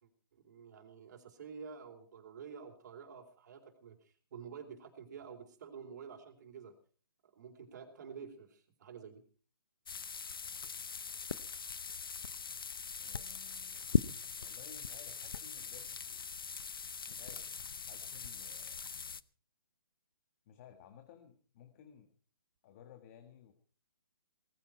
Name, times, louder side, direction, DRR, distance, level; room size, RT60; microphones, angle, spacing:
voice 1, 0.0-6.7 7.2-9.2, right 6 dB, 50° right, 3 dB, 4.0 m, -50 dB
sound 1, 9.9-19.2, left 6 dB, 75° left, 0.8 m, -40 dB
voice 2, 13.0-16.3 17.1-17.5 17.9-18.8 20.5-22.1 22.6-23.5, left 9 dB, 35° left, 6 dB, 1.8 m, -57 dB
19.0 x 15.0 x 4.6 m, 0.42 s
figure-of-eight pair, 140°, 12 cm